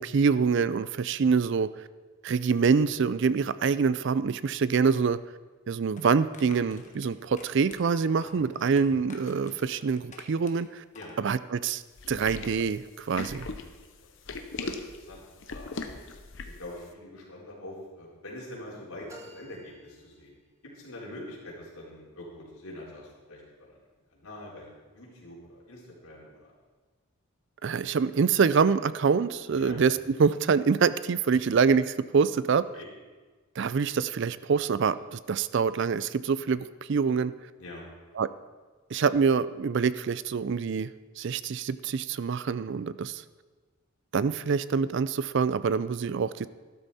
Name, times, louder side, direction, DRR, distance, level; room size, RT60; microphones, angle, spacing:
voice 1, 0.0-1.7 2.2-5.2 5.7-10.8 11.2-11.8 12.1-13.5 27.6-31.9 32.1-32.6 33.6-37.3 38.2-38.3 38.9-40.9 41.2-43.2 44.1-46.5, right 5 dB, 55° right, 16 dB, 0.4 m, -25 dB
sound 1, 5.9-11.2, left 3 dB, 35° left, 1.3 m, -51 dB
sound 2, 12.0-16.7, left 3 dB, 60° left, 0.9 m, -38 dB
voice 2, 14.6-15.9 16.4-20.4 20.6-23.7 24.1-26.5 29.6-29.8 31.4-31.5 32.7-32.9 37.6-37.8, left 1 dB, 80° left, -4 dB, 4.1 m, -44 dB
sound 3, 19.1-20.8, right 1 dB, 15° right, 1.3 m, -53 dB
12.5 x 12.5 x 4.2 m, 1.3 s
head